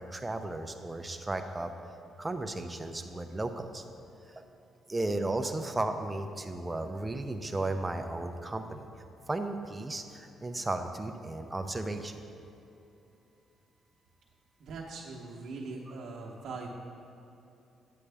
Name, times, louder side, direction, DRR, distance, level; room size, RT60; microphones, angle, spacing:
voice 1, 0.0-1.7 2.2-3.8 4.4-4.5 4.9-8.9 9.3-12.1, right 2 dB, 20° right, 6 dB, 0.6 m, -34 dB
voice 2, 14.6-16.7, right 3 dB, 70° right, -4 dB, 1.0 m, -41 dB
9.7 x 8.4 x 3.5 m, 2.8 s
cardioid pair, 90°, 0 cm